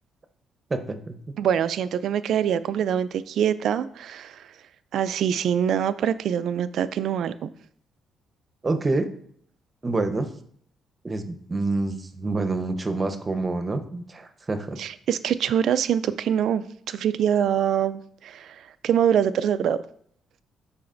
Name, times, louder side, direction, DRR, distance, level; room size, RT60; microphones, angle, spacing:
voice 1, 0.7-1.1 8.6-9.1 9.8-10.3 11.0-14.8, right 3 dB, 30° right, 8 dB, 0.8 m, -27 dB
voice 2, 1.4-4.5 4.9-7.5 14.8-19.8, right 9 dB, 70° right, 14 dB, 0.4 m, -24 dB
11.5 x 4.1 x 2.6 m, 0.64 s
cardioid pair, 90°, 0 cm